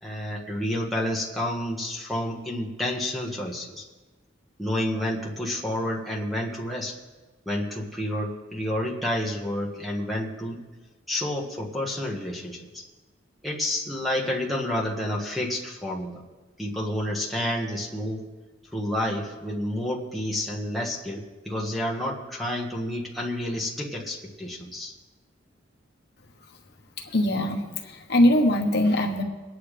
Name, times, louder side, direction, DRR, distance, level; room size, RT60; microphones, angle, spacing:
voice 1, 0.0-3.8 4.6-7.0 7.4-10.6 11.1-12.8 13.4-16.2 16.6-18.2 18.7-24.9, left 1 dB, ahead, -3 dB, 1.6 m, -29 dB
voice 2, 27.0-29.2, left 1 dB, 55° left, 2 dB, 1.1 m, -22 dB
23.0 x 9.7 x 3.4 m, 1.2 s
head